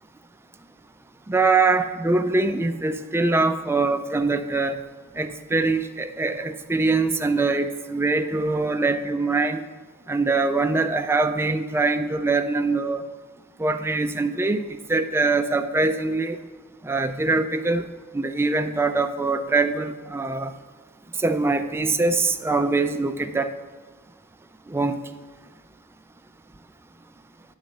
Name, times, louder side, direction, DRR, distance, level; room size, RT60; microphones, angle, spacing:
voice 1, 1.3-4.8 5.2-9.6 10.1-13.0 13.6-16.4 16.8-17.9 18.1-20.5 21.2-23.5 24.7-25.0, right 3 dB, 10° right, 8 dB, 0.3 m, -23 dB
9.2 x 4.0 x 6.5 m, 1.4 s
head